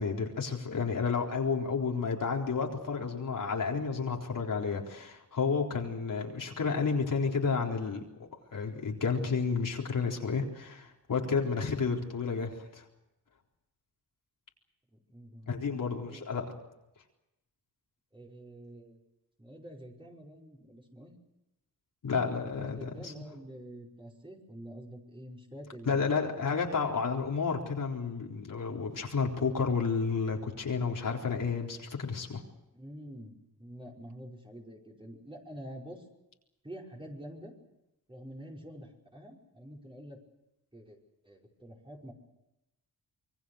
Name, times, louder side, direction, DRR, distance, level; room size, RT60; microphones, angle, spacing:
voice 1, 0.0-8.0 8.5-12.8 15.5-16.5 22.0-23.2 25.9-32.4, left 5 dB, 60° left, 0 dB, 4.0 m, -31 dB
voice 2, 15.1-16.5 18.1-19.0 19.4-21.1 22.5-26.2 32.7-36.0 36.6-37.5 38.1-40.2 40.7-41.0 41.2-42.1, equal, 15° right, -1 dB, 5.3 m, -47 dB
26.5 x 22.5 x 6.5 m, 0.93 s
wide cardioid pair, 105°, 36 cm